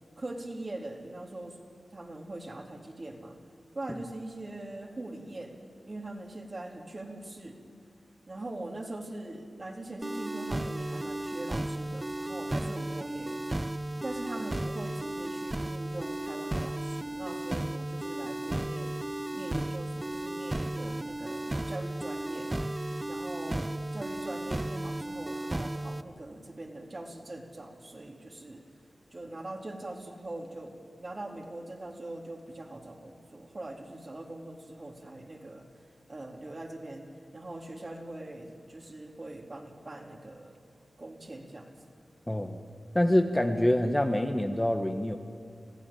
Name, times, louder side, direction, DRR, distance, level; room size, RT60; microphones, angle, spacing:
voice 1, 0.2-1.6 1.9-3.4 3.7-5.6 5.8-7.6 8.3-13.5 14.0-19.0 19.3-22.5 23.1-23.7 23.9-28.6 29.1-35.6 36.1-40.6 41.0-41.7, right 2 dB, 45° right, 1 dB, 3.7 m, -42 dB
sound 1, 10.0-26.0, right 1 dB, 25° right, 0.7 m, -34 dB
voice 2, 42.3-42.6 42.9-45.2, left 1 dB, 15° left, 5 dB, 1.7 m, -26 dB
26.0 x 16.0 x 8.9 m, 2.3 s
cardioid pair, 55°, 0 cm